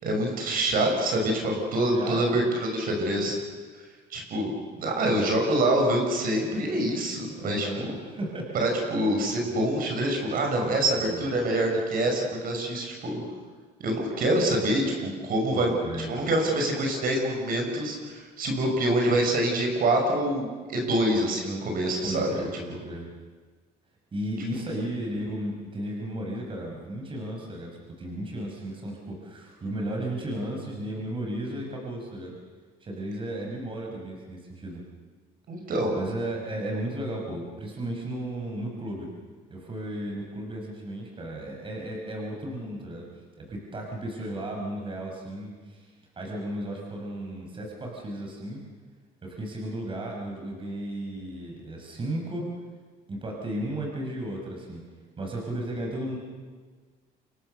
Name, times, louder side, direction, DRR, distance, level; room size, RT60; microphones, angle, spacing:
voice 1, 0.0-3.4 4.1-7.9 8.5-13.2 13.8-15.7 16.1-22.8 35.5-36.0, right 1 dB, 60° right, 2 dB, 6.5 m, -26 dB
voice 2, 1.9-2.4 7.4-8.5 10.9-11.3 15.5-16.1 22.0-23.1 24.1-27.7 28.0-32.3 32.8-34.8 36.0-39.1 39.5-43.0 43.4-45.9 46.2-48.6 49.2-52.5 53.1-54.8 55.2-56.2, right 1 dB, 30° right, 0 dB, 5.9 m, -34 dB
28.0 x 24.5 x 6.8 m, 1.4 s
cardioid pair, 110°, 17 cm